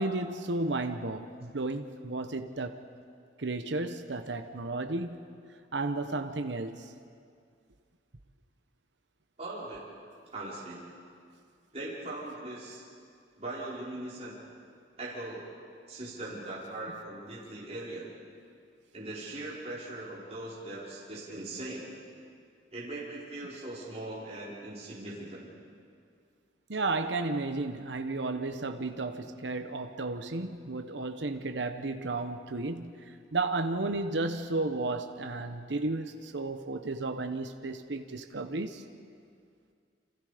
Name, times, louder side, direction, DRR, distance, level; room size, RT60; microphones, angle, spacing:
voice 1, 0.0-2.8 3.4-5.2 5.7-6.9 26.7-38.8, right 2 dB, 80° right, 1.1 m, -33 dB
voice 2, 9.4-9.9 10.3-10.8 11.7-12.8 13.4-14.4 15.0-15.5 15.9-18.1 18.9-21.9 22.7-25.5, right 2 dB, 35° right, 5.1 m, -40 dB
29.0 x 27.0 x 5.2 m
head